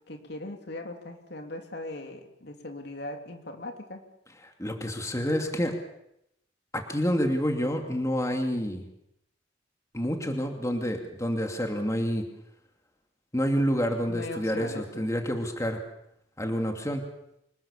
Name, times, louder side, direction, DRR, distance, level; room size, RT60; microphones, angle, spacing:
voice 1, 0.1-4.0 14.1-15.1, left 2 dB, 60° left, 4 dB, 3.2 m, -39 dB
voice 2, 4.6-5.7 6.7-8.8 9.9-12.2 13.3-15.8 16.4-17.0, equal, 15° left, 3 dB, 2.7 m, -28 dB
26.0 x 20.5 x 7.3 m, 0.79 s
head